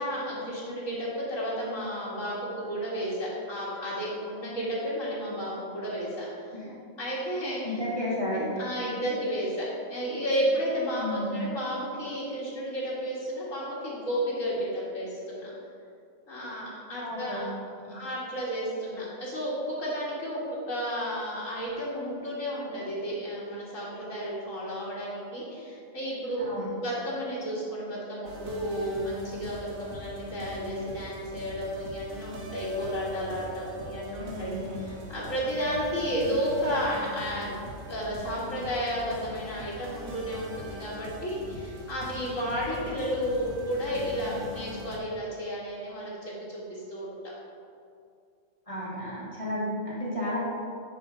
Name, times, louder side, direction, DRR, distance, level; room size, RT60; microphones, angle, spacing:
voice 1, 0.0-6.6 7.0-7.6 8.6-15.5 16.3-17.5 17.9-37.5 37.9-47.3, equal, 75° left, -8 dB, 2.3 m, -32 dB
voice 2, 7.6-8.5 11.0-11.4 17.0-17.5 17.8-18.0 26.4-26.8 34.2-34.7 48.7-50.4, left 1 dB, 25° left, -8 dB, 1.5 m, -33 dB
sound 1, 28.2-45.0, left 1 dB, 85° right, 1.5 m, -42 dB
10.0 x 4.4 x 5.0 m, 2.4 s
omnidirectional pair, 1.4 m